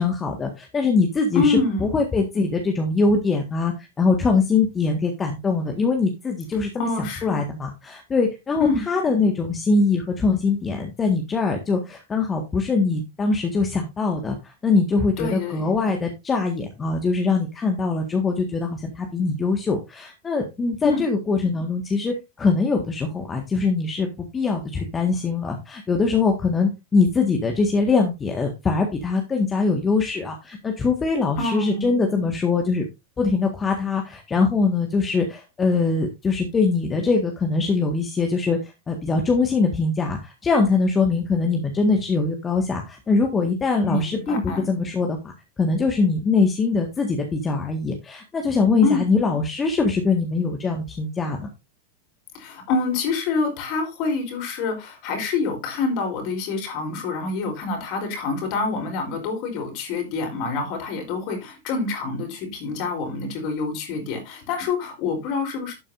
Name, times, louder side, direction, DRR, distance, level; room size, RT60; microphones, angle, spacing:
voice 1, 0.0-32.8 33.2-45.3 45.6-51.5, left 4 dB, 20° left, 3 dB, 1.8 m, -22 dB
voice 2, 1.3-1.8 6.8-7.4 8.6-8.8 15.2-15.6 20.8-21.0 31.4-31.9 43.8-44.6 48.8-49.0 52.3-65.7, left 4 dB, 45° left, 2 dB, 4.2 m, -26 dB
12.0 x 8.5 x 2.7 m, 0.24 s
figure-of-eight pair, 90°, 0 cm